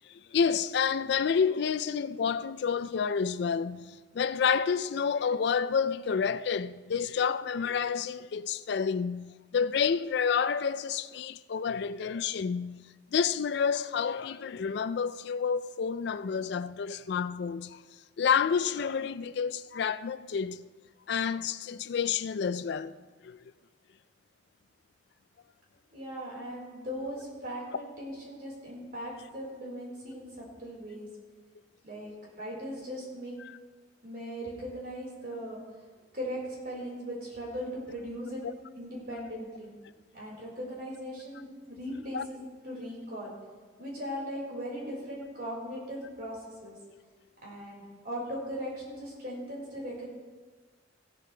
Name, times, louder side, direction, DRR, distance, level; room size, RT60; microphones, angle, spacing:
voice 1, 0.0-17.8 18.2-20.6 21.1-23.0 23.2-23.4 33.4-33.6 42.1-42.3, left 6 dB, 60° left, 0.4 m, -29 dB
voice 2, 25.9-31.1 31.8-33.4 34.0-35.6 36.1-38.4 38.7-39.7 40.1-43.3 43.8-46.8 47.4-50.1, equal, 50° right, 4.5 m, -39 dB
15.5 x 12.0 x 3.3 m
head